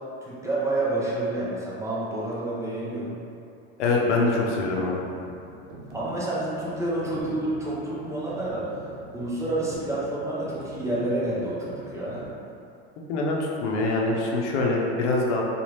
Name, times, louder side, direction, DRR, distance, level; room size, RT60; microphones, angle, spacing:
voice 1, 0.2-3.1 5.9-8.7 9.1-12.2, right 2 dB, 10° right, -8 dB, 0.4 m, -29 dB
voice 2, 3.8-5.0 13.1-15.4, left 2 dB, 85° left, -2 dB, 0.7 m, -24 dB
sound 1, 4.4-12.4, right 2 dB, 80° right, 0.7 m, -43 dB
2.7 x 2.4 x 3.2 m, 2.6 s
supercardioid pair, 120°, 34 cm